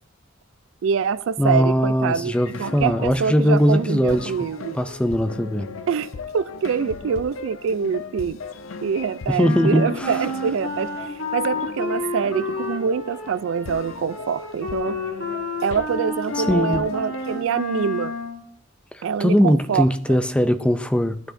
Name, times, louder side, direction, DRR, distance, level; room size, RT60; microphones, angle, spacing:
voice 1, 0.8-4.8 5.9-8.4 8.8-15.0 15.6-18.1 19.0-20.2, right 6 dB, 80° right, 0.3 m, -25 dB
voice 2, 1.4-4.3 4.7-5.7 9.3-10.2 16.3-16.8 18.9-21.2, equal, 5° left, 0.4 m, -20 dB
sound 1, 2.3-17.5, left 4 dB, 85° left, 0.5 m, -38 dB
Wind instrument woodwind instrument, 9.4-18.4, left 3 dB, 65° left, 2.2 m, -30 dB
12.5 x 8.2 x 2.6 m
head